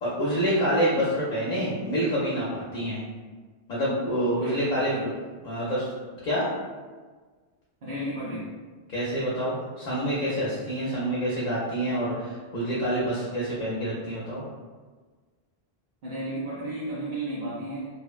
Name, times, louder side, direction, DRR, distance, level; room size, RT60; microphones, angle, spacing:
voice 1, 0.0-3.0 3.7-5.1 5.4-5.9 6.2-6.5 8.9-14.4, equal, 55° left, -7 dB, 0.6 m, -27 dB
voice 2, 4.4-5.0 7.8-8.5 16.0-17.9, right 1 dB, 60° right, -8 dB, 0.6 m, -33 dB
2.8 x 2.0 x 2.3 m, 1.4 s
omnidirectional pair, 1.1 m